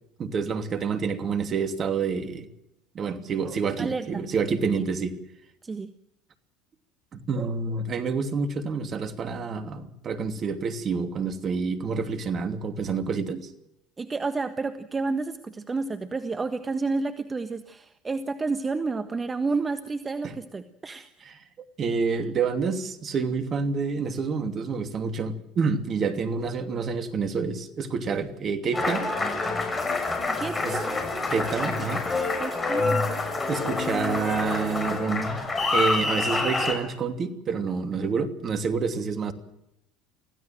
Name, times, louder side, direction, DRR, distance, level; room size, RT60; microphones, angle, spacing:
voice 1, 0.2-2.5 2.9-5.1 7.1-13.5 20.2-20.3 21.2-21.4 21.8-29.1 30.6-30.8 31.3-32.0 33.5-35.4 35.7-39.3, right 5 dB, 40° right, 8 dB, 2.9 m, -28 dB
voice 2, 3.8-4.2 5.6-5.9 14.0-21.1 22.1-22.3 30.3-30.9 32.4-33.2, right 3 dB, 25° right, 9 dB, 1.4 m, -30 dB
Applause, 28.7-36.7, left 3 dB, 20° left, 6.4 m, -27 dB
25.5 x 16.0 x 7.7 m, 0.83 s
hypercardioid pair, 75°, 0 cm